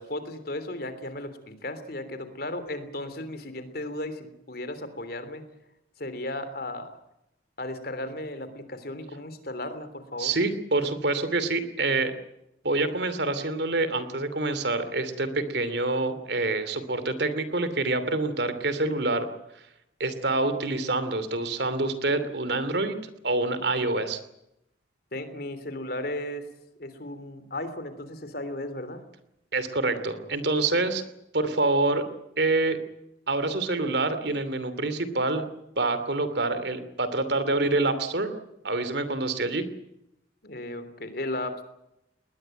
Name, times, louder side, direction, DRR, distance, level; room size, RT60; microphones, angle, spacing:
voice 1, 0.0-5.4 6.0-7.0 7.6-10.3 25.1-26.5 26.8-29.0 40.4-41.6, left 1 dB, 50° left, 11 dB, 3.3 m, -35 dB
voice 2, 10.2-12.1 12.6-19.3 20.0-23.0 23.2-24.2 29.5-31.0 31.3-32.0 32.4-32.8 33.3-35.4 35.8-38.3 38.6-39.6, right 2 dB, 60° right, 12 dB, 2.8 m, -26 dB
20.5 x 20.0 x 9.0 m, 0.84 s
head